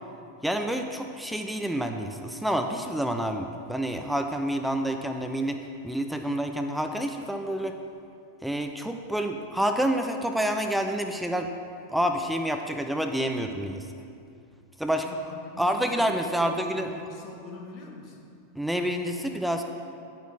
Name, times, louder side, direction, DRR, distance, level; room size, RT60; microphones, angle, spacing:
voice 1, 0.4-7.7 8.4-11.5 11.9-13.9 14.8-15.1 15.6-16.9 18.6-19.6, equal, ahead, 5 dB, 0.5 m, -28 dB
voice 2, 14.9-18.2, left 3 dB, 40° left, 1 dB, 1.5 m, -43 dB
10.0 x 8.6 x 3.8 m, 2.4 s
figure-of-eight pair, 90°, 0 cm